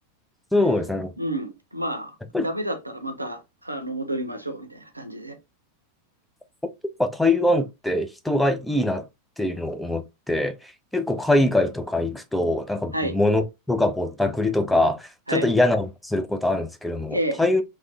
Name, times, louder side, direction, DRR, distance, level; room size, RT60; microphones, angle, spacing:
voice 1, 0.5-1.1 2.3-2.5 6.6-6.7 7.0-9.1 9.4-17.6, left 1 dB, 5° left, 0.3 m, -23 dB
voice 2, 1.2-5.4 12.9-13.2 15.3-15.5 17.1-17.4, right 1 dB, 85° right, 0.5 m, -30 dB
3.1 x 2.0 x 2.6 m
figure-of-eight pair, 90°, 0 cm